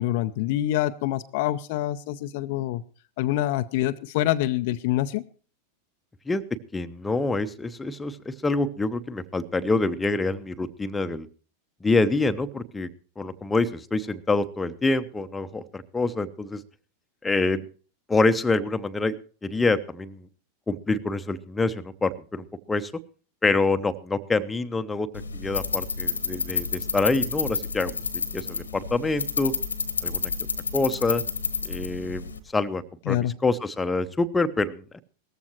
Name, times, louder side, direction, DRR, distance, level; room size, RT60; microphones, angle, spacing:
voice 1, 0.0-2.8 3.2-5.3 33.1-33.4, left 14 dB, 50° left, 10 dB, 0.6 m, -26 dB
voice 2, 6.7-11.3 11.8-12.9 13.2-16.6 17.2-17.6 18.1-19.2 19.4-20.3 20.7-22.9 23.4-25.1 25.3-27.9 28.3-29.5 30.0-30.3 30.7-31.2 31.6-35.0, left 3 dB, 10° left, 9 dB, 0.8 m, -26 dB
sound 1, 25.1-32.4, left 5 dB, 75° left, 1.3 m, -30 dB
18.0 x 14.5 x 3.0 m, 0.39 s
figure-of-eight pair, 90°, 0 cm